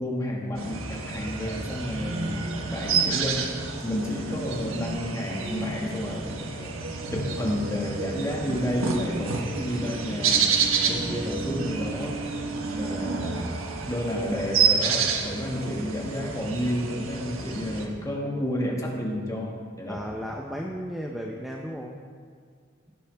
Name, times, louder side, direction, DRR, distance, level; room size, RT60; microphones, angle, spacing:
voice 1, 0.0-3.5 3.8-6.7 7.1-10.5 10.9-12.2 12.8-13.5 13.9-20.1, equal, 15° left, -2 dB, 2.0 m, -31 dB
sound 1, 0.6-17.9, right 5 dB, 90° right, 1.4 m, -29 dB
voice 2, 11.0-11.5 19.9-22.0, equal, ahead, -1 dB, 0.7 m, -35 dB
18.0 x 9.9 x 3.5 m, 2.1 s
head